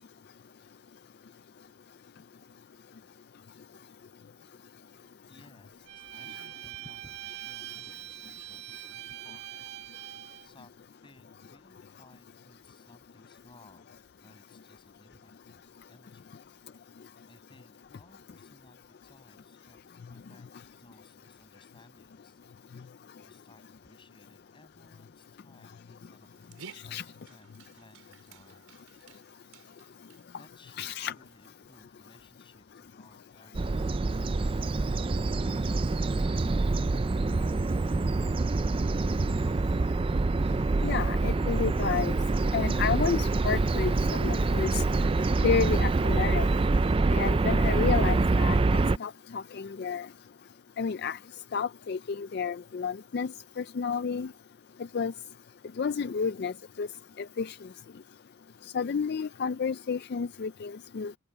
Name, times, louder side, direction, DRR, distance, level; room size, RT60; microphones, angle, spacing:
voice 1, 5.3-9.5 10.4-15.6 15.9-16.3 17.3-20.5 20.8-22.4 22.7-23.0 23.2-28.9 30.2-34.0 34.3-37.5, left 1 dB, 25° left, 7.1 m, -59 dB
Bowed string instrument, 5.9-10.5, right 13 dB, 50° right, 1.8 m, -43 dB
Dog, 26.2-31.5, right 5 dB, 85° right, 4.0 m, -54 dB
voice 2, 30.8-31.1 40.8-42.1 42.5-44.8 45.4-46.5 47.1-48.6 49.0-50.1 50.8-51.2 51.5-53.3 53.6-54.3 54.9-55.1 55.8-56.5 56.8-56.9 57.4-57.6 58.7-61.1, left 6 dB, 50° left, 0.4 m, -30 dB
sound 1, 33.5-49.0, right 3 dB, 25° right, 0.3 m, -26 dB
head